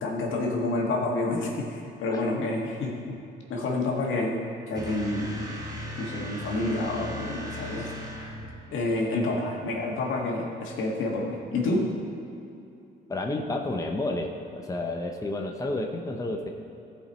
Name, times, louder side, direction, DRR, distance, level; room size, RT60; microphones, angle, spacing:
voice 1, 0.0-3.2 3.5-5.5 6.0-7.9 8.7-11.9, left 2 dB, 80° left, -1 dB, 1.7 m, -29 dB
sound 1, 4.8-8.7, equal, 20° right, 1.5 m, -37 dB
voice 2, 13.1-16.5, left 2 dB, 15° left, 2 dB, 0.8 m, -31 dB
14.0 x 5.1 x 4.3 m, 2.7 s
cardioid pair, 90°, 20 cm